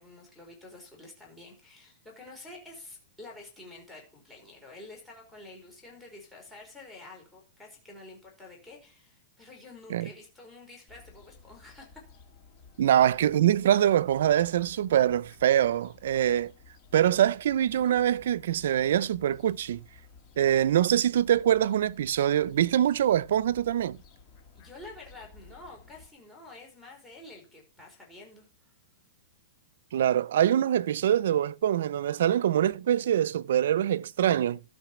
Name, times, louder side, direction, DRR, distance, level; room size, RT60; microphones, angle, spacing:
voice 1, 0.0-12.0 24.5-28.5, left 2 dB, 5° left, 4.8 m, -49 dB
Fowl, 10.9-26.1, left 5 dB, 30° left, 2.0 m, -55 dB
voice 2, 12.8-16.5 16.9-19.8 20.4-24.0 29.9-34.6, right 11 dB, 70° right, 0.5 m, -24 dB
12.5 x 5.6 x 7.2 m
supercardioid pair, 170°, 0 cm